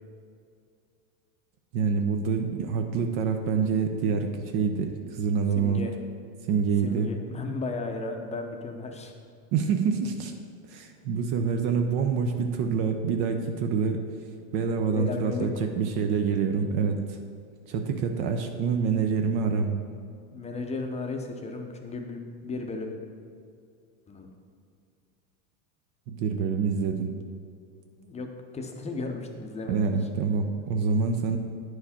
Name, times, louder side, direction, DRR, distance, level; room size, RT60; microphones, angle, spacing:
voice 1, 1.7-5.8 6.5-7.1 9.5-10.3 10.7-14.0 14.5-17.2 17.7-19.8 26.1-27.1 29.7-31.4, right 5 dB, 50° right, 5 dB, 0.7 m, -26 dB
voice 2, 5.6-6.0 6.8-9.1 14.9-15.7 20.2-23.0 24.1-24.3 28.0-29.9, left 3 dB, 15° left, 3 dB, 0.6 m, -35 dB
9.4 x 4.8 x 4.2 m, 2.3 s
supercardioid pair, 120°, 48 cm